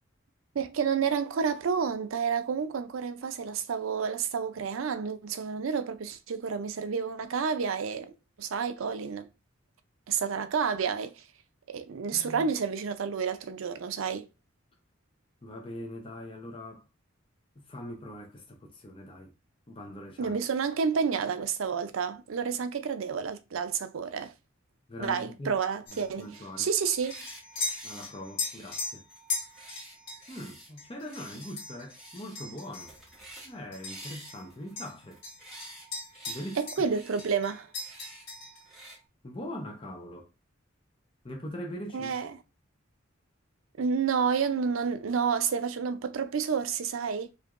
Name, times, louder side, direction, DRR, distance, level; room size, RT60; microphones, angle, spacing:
voice 1, 0.5-8.1 8.4-9.3 10.1-11.2 11.7-14.3 20.2-24.3 25.0-26.3 26.6-27.2 36.6-37.7 41.9-42.3 43.8-47.3, right 6 dB, 75° right, 0.5 m, -30 dB
voice 2, 12.1-12.5 15.4-16.8 17.6-19.3 19.7-20.3 24.9-25.6 25.9-26.7 27.8-29.0 30.3-32.9 33.4-35.2 36.3-36.9 39.2-40.3 41.2-42.3, left 1 dB, 25° left, 0.7 m, -42 dB
sound 1, 25.9-34.5 34.8-36.9 37.2-38.7, left 3 dB, 60° left, 1.6 m, -39 dB
sound 2, 26.9-27.4 27.7-28.1 28.4-30.7 31.0-31.6 31.9-32.4 32.6-33.5 33.9-35.9 36.1-36.6 36.9-37.3 37.8-38.2 38.7-39.0, right 1 dB, ahead, 1.3 m, -49 dB
4.7 x 2.6 x 2.5 m
head